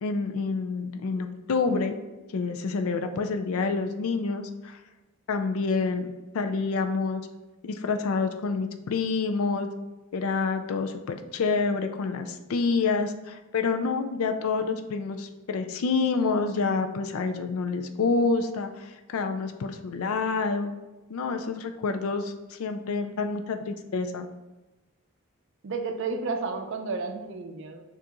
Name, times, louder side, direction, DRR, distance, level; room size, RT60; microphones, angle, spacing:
voice 1, 0.0-2.0 2.3-4.8 5.3-7.2 7.6-9.7 10.1-20.7 21.1-24.3, left 4 dB, 70° left, 6 dB, 0.4 m, -28 dB
voice 2, 25.6-27.8, right 4 dB, 55° right, 6 dB, 0.4 m, -32 dB
6.7 x 2.5 x 2.9 m, 1.1 s
head